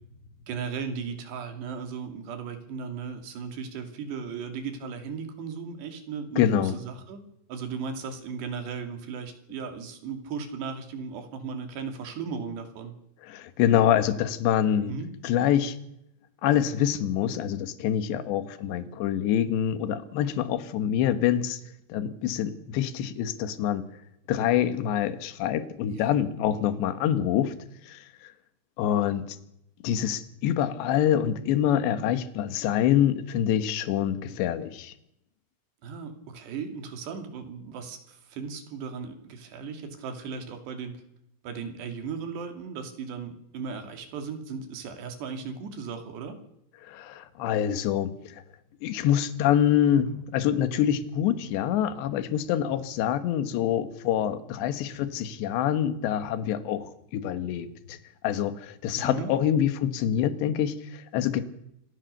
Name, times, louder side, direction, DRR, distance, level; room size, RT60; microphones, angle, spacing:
voice 1, 0.5-7.2 7.5-12.9 14.8-15.1 25.9-26.1 35.8-41.0 41.4-46.4 59.0-59.3, right 5 dB, 65° right, 6 dB, 4.7 m, -36 dB
voice 2, 6.4-6.7 13.3-14.9 15.2-15.8 16.4-21.6 21.9-23.9 24.3-27.5 27.9-28.3 28.8-29.4 29.8-34.9 46.8-48.4 48.8-58.0 58.2-61.4, left 10 dB, 70° left, 11 dB, 3.4 m, -26 dB
27.0 x 17.0 x 6.7 m, 0.79 s
omnidirectional pair, 5.6 m